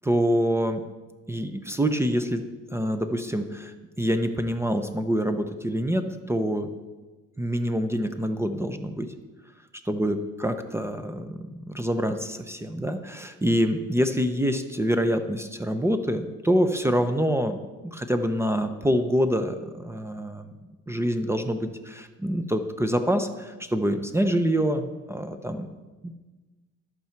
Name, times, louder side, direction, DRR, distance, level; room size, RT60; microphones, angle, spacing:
voice 1, 0.0-0.8 1.3-2.4 2.7-6.7 7.4-9.1 9.8-17.6 17.8-20.5 20.9-25.7 26.0-26.1, equal, 10° right, 8 dB, 0.6 m, -26 dB
11.5 x 8.4 x 4.5 m, 1.2 s
cardioid pair, 120°, 29 cm